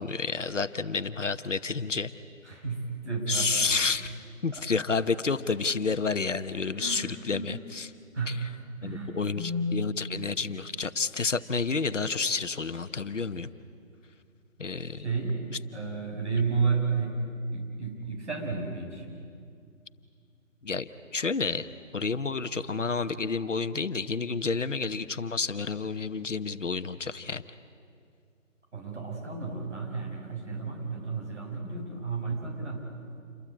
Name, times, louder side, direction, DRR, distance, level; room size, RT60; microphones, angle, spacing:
voice 1, 0.0-2.1 3.3-4.1 4.4-7.9 8.3-8.4 8.8-13.5 14.6-15.0 15.5-15.6 20.6-21.7 21.9-27.4, left 4 dB, 60° left, 11 dB, 1.1 m, -30 dB
voice 2, 2.4-3.7 4.5-4.9 6.8-7.6 8.1-8.5 8.8-9.9 14.9-15.4 15.7-17.2 17.5-19.1 28.7-32.9, right 4 dB, 55° right, 0 dB, 6.9 m, -32 dB
28.5 x 23.0 x 8.7 m, 2.3 s
figure-of-eight pair, 150°, 41 cm